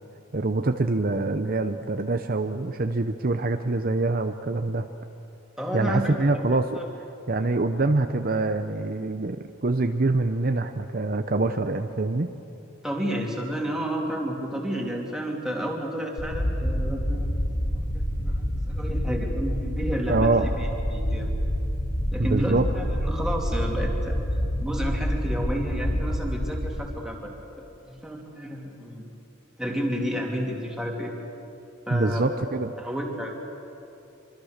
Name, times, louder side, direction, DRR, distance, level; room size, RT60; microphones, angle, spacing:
voice 1, 0.3-4.8 5.7-6.8 7.3-12.3 20.1-20.5 22.2-22.6 31.9-32.7, right 2 dB, 45° right, 7 dB, 0.7 m, -25 dB
voice 2, 5.6-6.9 12.8-17.3 17.7-21.3 22.1-24.2 24.6-29.1 29.6-31.1 31.9-32.3 32.8-33.3, equal, 5° right, -1 dB, 3.0 m, -31 dB
sound 1, 16.2-26.7, equal, 70° left, 3.0 m, -27 dB
25.0 x 24.5 x 6.6 m, 2.8 s
head